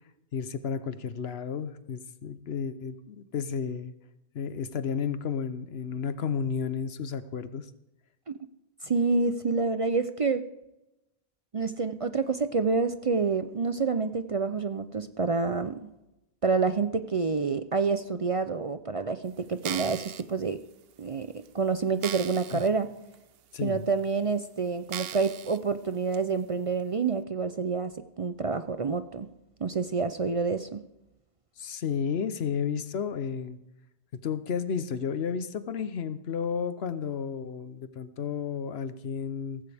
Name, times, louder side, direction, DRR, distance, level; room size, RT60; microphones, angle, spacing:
voice 1, 0.3-3.9 4.3-7.7 22.5-22.6 23.5-23.8 31.6-33.6 34.2-39.6, left 6 dB, 75° left, 12 dB, 1.1 m, -32 dB
voice 2, 8.8-10.4 11.5-15.9 16.4-20.6 21.0-22.9 23.6-29.3 29.6-30.8, right 4 dB, 40° right, 10 dB, 0.5 m, -28 dB
sound 1, 19.5-20.2 20.9-21.0 21.5-21.6 22.0-22.7 23.1-23.2 24.0-24.1 24.9-25.6 26.1-26.2, right 10 dB, 70° right, 0.8 m, -38 dB
17.0 x 15.5 x 3.5 m, 0.95 s
omnidirectional pair, 1.1 m